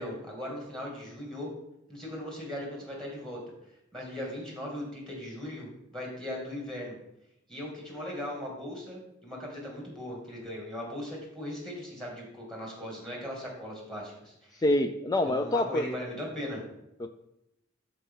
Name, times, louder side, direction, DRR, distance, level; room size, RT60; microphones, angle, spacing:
voice 1, 0.0-1.5 1.9-3.4 3.9-7.0 7.5-14.6 15.3-16.6, left 1 dB, 5° left, -2 dB, 2.4 m, -38 dB
voice 2, 14.6-15.9 17.0-17.1, left 1 dB, 20° left, 7 dB, 0.3 m, -26 dB
12.5 x 4.2 x 3.8 m, 0.84 s
head